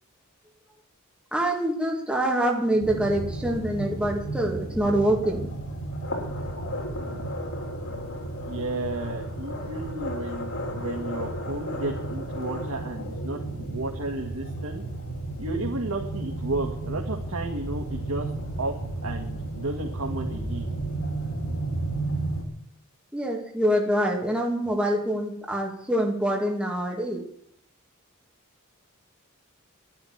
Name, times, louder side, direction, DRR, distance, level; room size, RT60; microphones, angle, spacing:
voice 1, 1.3-5.5 23.1-27.2, right 1 dB, 5° right, -1 dB, 2.4 m, -25 dB
sound 1, 2.8-22.4, right 1 dB, 70° left, 4.0 m, -33 dB
voice 2, 8.5-14.8 15.4-18.3 18.6-18.8 19.0-20.7, right 2 dB, 75° right, 1 dB, 1.9 m, -33 dB
12.0 x 11.0 x 8.1 m, 0.72 s
head